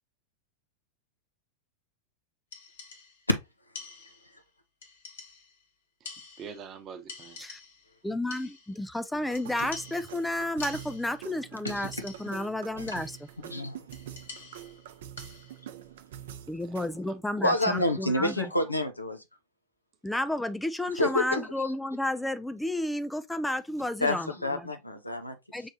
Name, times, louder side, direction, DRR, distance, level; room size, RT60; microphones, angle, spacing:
sound 1, 2.5-3.3 3.7-4.4 4.8-5.6 6.0-6.8 7.1-7.9 8.3-8.9 9.3-11.3 11.7-12.5 12.9-13.4 13.9-15.7, left 4 dB, 65° left, 1.3 m, -47 dB
voice 1, 6.4-7.4 16.6-17.6, right 6 dB, 30° right, 0.9 m, -45 dB
voice 2, 8.0-13.2 13.4-13.5 16.5-18.5 20.0-24.7 25.5-25.7, left 1 dB, 5° left, 0.4 m, -32 dB
sound 2, 9.1-17.1, right 11 dB, 55° right, 0.6 m, -45 dB
voice 3, 17.4-19.2 20.9-21.4 24.0-25.6, left 1 dB, 85° left, 0.6 m, -28 dB
6.2 x 3.2 x 2.7 m
figure-of-eight pair, 90°, 0 cm